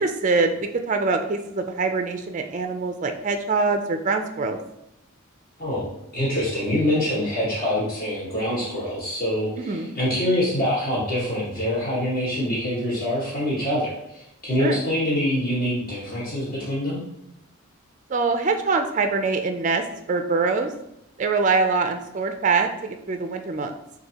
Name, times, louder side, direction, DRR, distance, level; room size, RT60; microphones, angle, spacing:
voice 1, 0.0-4.6 9.6-9.9 14.6-14.8 18.1-20.7 21.2-23.8, right 4 dB, 35° right, 6 dB, 0.3 m, -24 dB
voice 2, 5.6-17.0, left 1 dB, 40° left, -8 dB, 1.4 m, -25 dB
6.3 x 2.6 x 2.9 m, 0.83 s
head